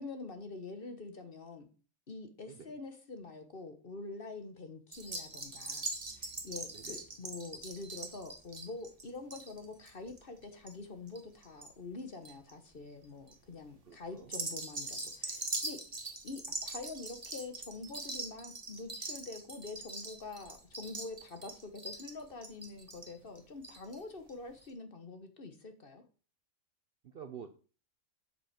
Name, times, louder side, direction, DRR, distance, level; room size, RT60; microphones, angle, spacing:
voice 1, 0.0-1.7 2.1-5.9 6.2-15.8 16.0-26.0, left 3 dB, 40° left, 7 dB, 1.3 m, -46 dB
voice 2, 2.5-2.8 6.7-7.1 13.9-14.3 27.0-27.5, right 7 dB, 55° right, 9 dB, 0.7 m, -49 dB
sound 1, 4.9-11.7 12.0-12.5 13.0-13.3 14.2-24.0 24.3-24.4 24.6-24.7, right 2 dB, 25° right, 1.4 m, -42 dB
7.7 x 5.7 x 5.8 m, 0.37 s
omnidirectional pair, 1.5 m